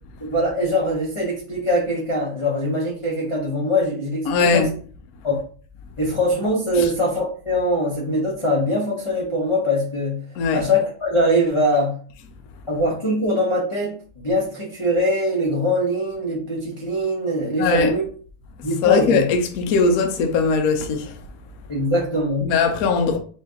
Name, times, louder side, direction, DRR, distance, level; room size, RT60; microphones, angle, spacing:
voice 1, 0.3-4.7 5.2-5.4 6.0-10.2 10.5-12.0 12.7-13.9 14.2-18.0 18.6-19.3 21.7-22.5, equal, 40° left, 0.4 m, -22 dB
voice 2, 4.3-4.7 6.8-6.9 10.3-10.6 17.6-17.9 18.8-21.2 22.4-23.2, left 5 dB, 80° left, 0.8 m, -20 dB
4.2 x 2.7 x 3.7 m
omnidirectional pair, 2.4 m